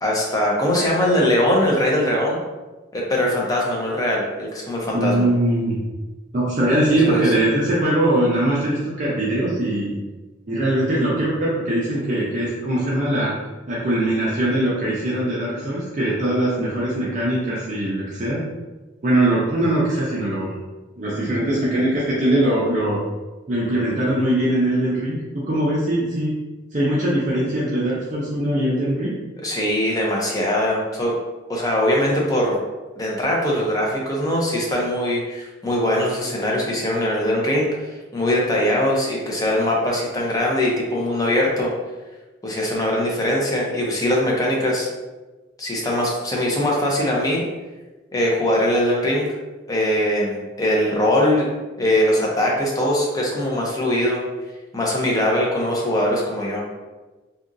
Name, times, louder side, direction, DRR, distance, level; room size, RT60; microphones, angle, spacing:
voice 1, 0.0-2.4 2.9-5.3 7.1-7.2 29.4-31.2 31.5-32.6 32.9-37.7 38.1-41.7 42.4-44.9 45.6-47.4 48.1-49.3 49.7-51.5 51.8-54.2 54.7-56.6, left 1 dB, 20° left, -3 dB, 0.5 m, -21 dB
voice 2, 4.9-5.8 6.3-10.0 10.5-13.4 13.7-18.4 19.0-20.5 21.0-23.0 23.5-26.3 26.7-29.1, right 1 dB, 40° right, -7 dB, 0.5 m, -21 dB
2.8 x 2.4 x 2.5 m, 1.2 s
head